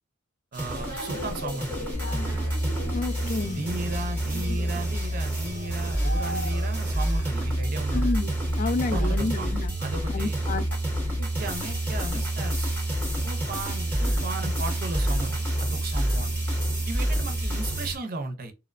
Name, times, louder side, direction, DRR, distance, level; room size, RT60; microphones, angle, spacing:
sound 1, 0.5-18.0, right 1 dB, 5° left, 0.7 m, -35 dB
voice 1, 0.5-1.9 3.5-8.1 8.6-10.4 11.2-12.7 13.2-16.5 16.9-18.5, right 2 dB, 45° right, 0.5 m, -36 dB
sound 2, 0.7-7.5, left 1 dB, 90° left, 1.2 m, -39 dB
sound 3, 1.9-17.9, right 1 dB, 70° left, 1.0 m, -28 dB
voice 2, 2.9-3.6 7.9-9.7 10.1-10.6, left 3 dB, 40° left, 0.3 m, -30 dB
2.8 x 2.1 x 2.4 m
head